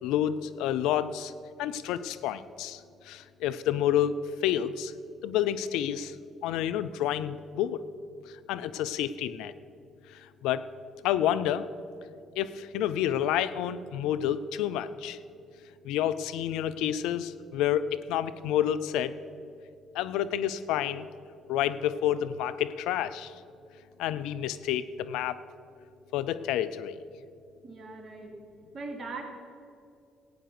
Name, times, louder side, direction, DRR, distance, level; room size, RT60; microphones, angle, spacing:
voice 1, 0.0-1.3 1.6-4.9 5.2-6.2 6.4-7.8 8.5-9.5 10.1-10.7 11.0-11.7 12.4-15.2 15.8-19.2 19.9-21.1 21.5-23.3 24.0-25.4 26.1-27.0, left 10 dB, 75° left, 14 dB, 0.5 m, -29 dB
voice 2, 27.6-28.3 28.7-29.2, right 3 dB, 45° right, 2 dB, 2.8 m, -40 dB
16.0 x 9.1 x 6.1 m, 2.5 s
hypercardioid pair, 50°, 0 cm